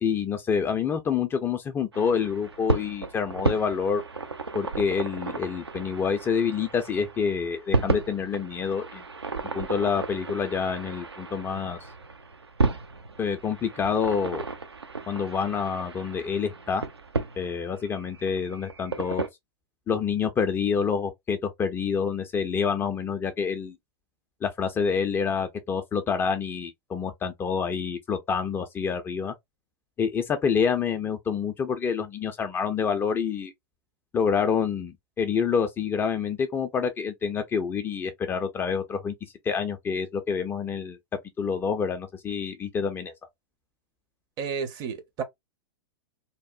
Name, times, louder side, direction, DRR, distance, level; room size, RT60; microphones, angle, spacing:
voice 1, 0.0-4.0 4.5-9.0 9.5-11.9 13.2-14.4 15.1-16.8 17.4-19.3 19.9-23.8 24.4-29.3 30.0-33.5 34.1-39.1 39.4-41.0 41.4-43.1, left 6 dB, 15° left, 0.4 m, -27 dB
sound 1, 1.9-19.3, right 3 dB, 85° right, 0.5 m, -33 dB
voice 2, 44.4-45.2, right 6 dB, 30° right, 0.6 m, -31 dB
2.8 x 2.0 x 2.3 m
figure-of-eight pair, 95°, 13 cm